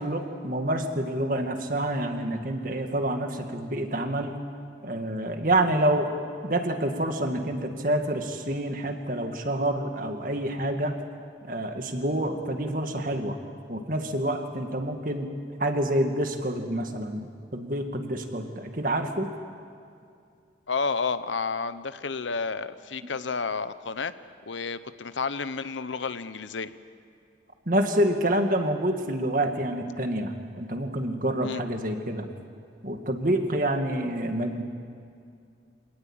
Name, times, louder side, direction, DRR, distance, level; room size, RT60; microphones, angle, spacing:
voice 1, 0.0-4.3 4.8-6.1 6.4-10.9 11.5-13.4 13.7-15.3 15.6-17.3 17.5-19.3 27.7-32.3 32.8-34.6, right 1 dB, 45° right, 5 dB, 2.0 m, -27 dB
voice 2, 20.7-24.1 24.5-26.7 31.4-31.6, left 4 dB, 85° left, 13 dB, 0.9 m, -31 dB
26.0 x 18.5 x 8.9 m, 2.4 s
head